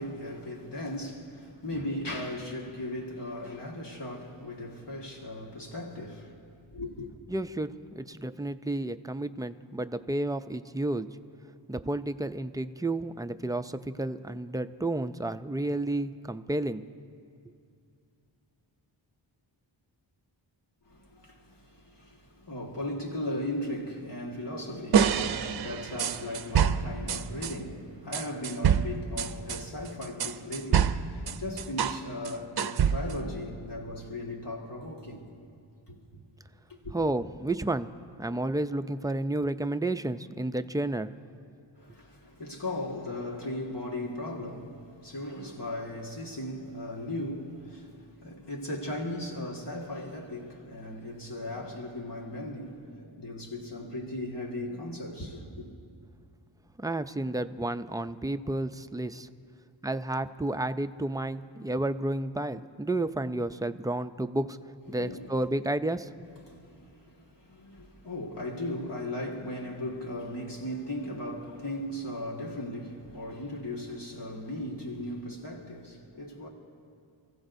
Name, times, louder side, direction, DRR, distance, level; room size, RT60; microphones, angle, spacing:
voice 1, 0.0-6.3 6.7-7.1 20.9-35.3 35.9-36.2 36.7-37.0 41.8-55.7 64.9-65.4 66.5-76.5, left 1 dB, 60° left, 1.8 m, -37 dB
voice 2, 7.3-11.1 11.7-16.8 36.9-37.9 38.2-41.1 56.8-59.3 59.8-64.6 64.9-66.1, right 2 dB, 10° right, 0.3 m, -31 dB
sound 1, 24.9-27.6 28.1-32.0 32.3-33.3, right 8 dB, 55° right, 0.6 m, -27 dB
29.5 x 15.5 x 2.6 m
wide cardioid pair, 85°, 47 cm